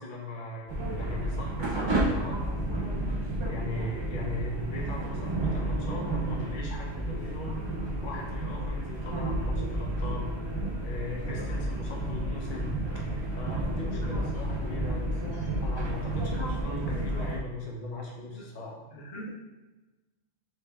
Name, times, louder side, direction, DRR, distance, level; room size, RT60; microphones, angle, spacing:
voice 1, 0.0-7.6 8.0-10.3 10.8-12.7 13.1-18.8, left 2 dB, 45° left, -2 dB, 0.9 m, -39 dB
sound 1, 0.7-17.4, right 1 dB, 30° right, 0.5 m, -31 dB
voice 2, 18.3-19.3, right 1 dB, 70° left, -2 dB, 1.1 m, -44 dB
4.3 x 3.2 x 3.5 m, 1.1 s
omnidirectional pair, 1.3 m